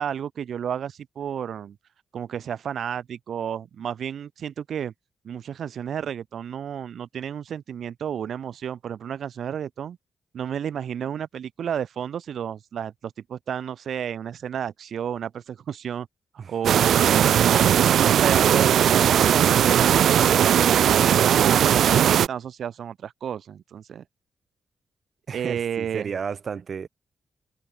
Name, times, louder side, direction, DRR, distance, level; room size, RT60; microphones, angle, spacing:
voice 1, 0.0-1.8 2.1-4.9 5.2-10.0 10.3-16.1 16.3-17.7 18.0-24.0 25.3-26.1, right 8 dB, 60° right, 1.5 m, -31 dB
voice 2, 16.4-16.8 25.3-26.9, right 6 dB, 40° right, 5.6 m, -33 dB
sound 1, 16.6-22.3, right 9 dB, 80° right, 1.0 m, -18 dB
wide cardioid pair, 175°, 0 cm